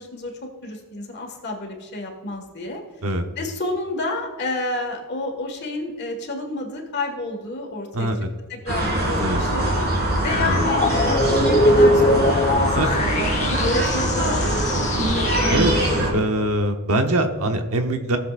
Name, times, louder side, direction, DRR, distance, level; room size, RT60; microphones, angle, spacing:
voice 1, 0.0-2.8 3.4-8.1 8.5-9.7 10.2-12.8 13.3-15.1, left 2 dB, 50° left, 2 dB, 1.7 m, -30 dB
voice 2, 7.9-8.3 9.2-9.4 10.4-10.7 12.7-12.9 15.5-15.7 16.1-18.2, right 1 dB, 70° right, 5 dB, 1.0 m, -23 dB
sound 1, 8.7-16.1, right 1 dB, 50° right, 2.8 m, -22 dB
sound 2, 10.2-15.9, left 1 dB, 35° left, 1.1 m, -22 dB
19.0 x 7.2 x 2.5 m, 1.4 s
head